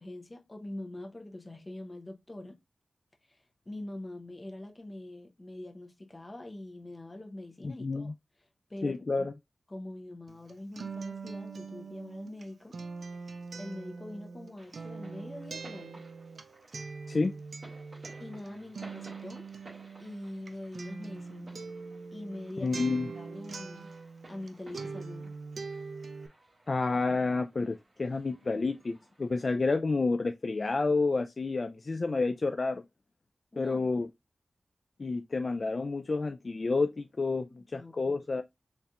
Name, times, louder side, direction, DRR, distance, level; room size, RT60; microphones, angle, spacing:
voice 1, 0.0-2.6 3.3-8.1 8.7-9.3 9.7-12.8 13.6-16.0 18.2-19.5 20.0-21.6 22.1-22.8 23.1-23.9 24.3-25.3 33.5-33.9 37.5-38.4, left 1 dB, 30° left, 0.8 m, -44 dB
voice 2, 7.6-8.1 8.8-9.3 17.1-17.3 22.6-23.1 26.7-32.8 33.6-34.1 35.0-38.4, left 3 dB, 50° left, 0.3 m, -30 dB
Acoustic guitar, 10.3-24.5 24.7-26.3, right 4 dB, 75° right, 0.4 m, -42 dB
sound 1, 14.6-29.5, right 2 dB, 50° right, 2.2 m, -57 dB
4.1 x 3.3 x 2.4 m
wide cardioid pair, 80°, 0 cm